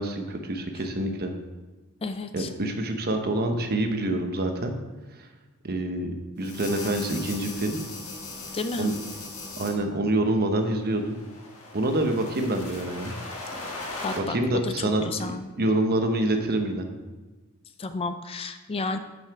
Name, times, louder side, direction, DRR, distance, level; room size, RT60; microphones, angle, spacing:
voice 1, 0.0-1.3 2.3-4.7 5.6-7.8 8.8-8.9 9.6-11.2 11.7-13.1 14.2-16.9, right 1 dB, 45° right, 5 dB, 1.0 m, -26 dB
voice 2, 2.0-2.5 8.5-8.9 14.0-14.4 14.6-15.5 17.8-19.0, left 3 dB, 25° left, 9 dB, 0.4 m, -32 dB
sound 1, 6.4-9.7 10.8-14.2, left 3 dB, 70° left, 1.6 m, -37 dB
7.7 x 5.6 x 5.8 m, 1.2 s
head